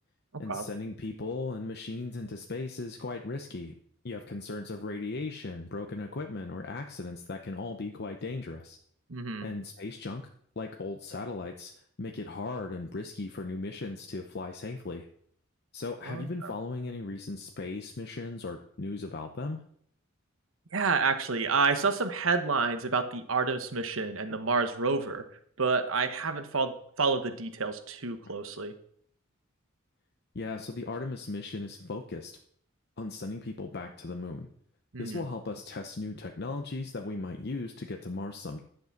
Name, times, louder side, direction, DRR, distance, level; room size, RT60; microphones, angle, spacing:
voice 1, 0.4-3.7 4.0-8.8 9.4-10.3 10.6-11.7 12.0-15.1 15.7-19.6 24.3-24.4 28.3-28.4 30.3-32.4 33.0-34.5 35.0-38.6, left 3 dB, 55° left, 4 dB, 0.8 m, -37 dB
voice 2, 9.1-9.5 16.1-16.5 20.7-25.2 25.6-28.7 34.9-35.2, right 4 dB, 75° right, 9 dB, 1.1 m, -29 dB
11.0 x 7.8 x 5.9 m, 0.65 s
head